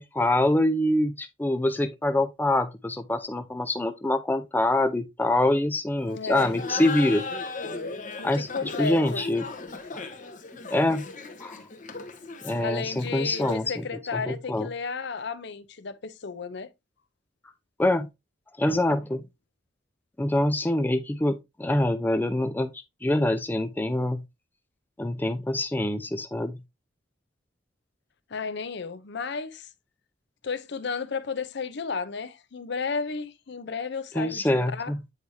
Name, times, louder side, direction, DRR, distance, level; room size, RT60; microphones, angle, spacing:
voice 1, 0.0-7.2 8.2-8.5 8.8-9.4 9.9-10.0 10.7-11.1 11.4-11.6 12.4-13.7 14.1-14.7 17.8-18.1 18.6-19.2 20.2-22.7 23.0-24.2 25.0-26.6 34.2-35.0, left 1 dB, 10° left, 0.4 m, -25 dB
voice 2, 6.0-6.6 8.2-9.2 12.6-16.7 28.3-29.7 30.4-34.9, left 5 dB, 60° left, 0.6 m, -33 dB
Laughter, 6.3-13.8, left 3 dB, 40° left, 1.0 m, -37 dB
8.1 x 4.7 x 2.7 m
head